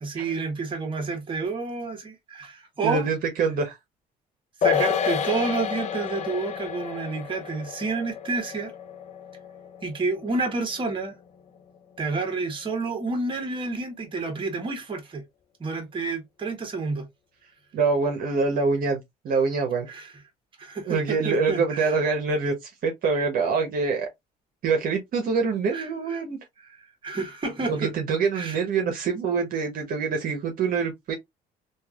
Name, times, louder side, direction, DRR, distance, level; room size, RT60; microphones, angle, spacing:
voice 1, 0.0-3.1 4.6-8.7 9.8-11.1 12.0-15.2 15.6-17.1 19.9-20.1 20.6-22.0 25.7-26.2 26.6-27.9 28.3-28.6, right 4 dB, 30° right, 1.2 m, -29 dB
voice 2, 2.8-3.8 17.7-19.9 20.9-24.1 24.6-26.4 27.7-31.1, right 4 dB, 55° right, 0.9 m, -25 dB
sound 1, 4.6-11.3 11.6-11.7, left 8 dB, 45° left, 0.5 m, -30 dB
3.2 x 2.4 x 2.3 m
cardioid pair, 110°, 17 cm